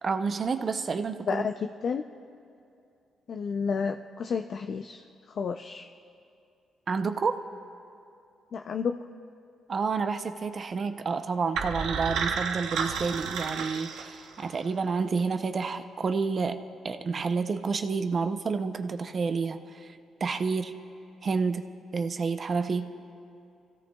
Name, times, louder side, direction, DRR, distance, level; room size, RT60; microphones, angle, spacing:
voice 1, 0.0-1.4 6.9-7.4 9.7-20.8 21.2-22.9, right 4 dB, 35° right, 8 dB, 0.5 m, -29 dB
voice 2, 3.3-5.0 5.4-5.9 8.5-9.0, left 6 dB, 50° left, 6 dB, 0.4 m, -30 dB
sound 1, 11.5-14.6, right 6 dB, 90° right, 0.9 m, -31 dB
27.5 x 16.5 x 2.3 m, 2.5 s
cardioid pair, 150°, 0 cm